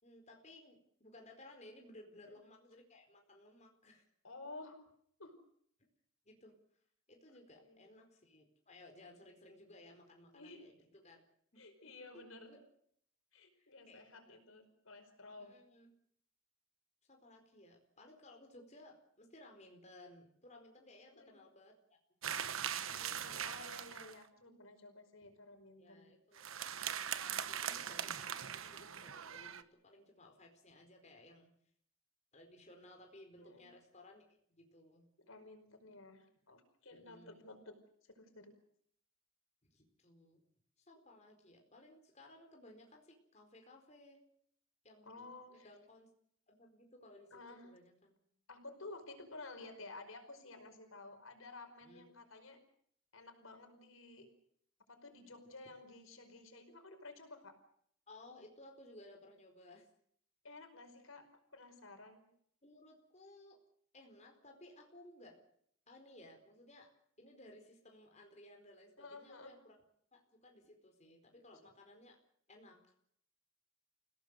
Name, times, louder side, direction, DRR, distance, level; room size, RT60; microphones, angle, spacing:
voice 1, 0.0-4.1 6.2-6.6 7.1-11.2 12.1-12.6 13.6-14.0 15.4-15.9 17.1-22.0 25.2-25.3 25.8-26.5 27.2-31.5 32.3-35.1 36.9-37.4 39.6-40.4 40.8-44.2 44.8-46.1 46.5-48.2 51.8-52.0 58.1-59.9 62.6-63.6 63.9-65.4 65.9-66.9 67.2-69.7 70.1-72.2 72.5-72.9, left 1 dB, 35° left, 3 dB, 4.6 m, -59 dB
voice 2, 4.2-4.8 5.2-5.4 7.3-7.8 10.3-10.7 11.6-12.6 13.3-15.5 21.1-21.3 22.8-26.1 33.4-33.7 35.3-37.7 38.0-38.5 45.0-45.7 47.3-47.7 48.5-52.6 53.1-54.3 54.9-57.6 60.4-62.3 69.0-69.5, left 2 dB, 85° left, 6 dB, 5.1 m, -53 dB
sound 1, 22.2-24.2 26.4-29.6, right 9 dB, 85° right, 1.3 m, -41 dB
29.5 x 17.5 x 6.7 m, 0.67 s
head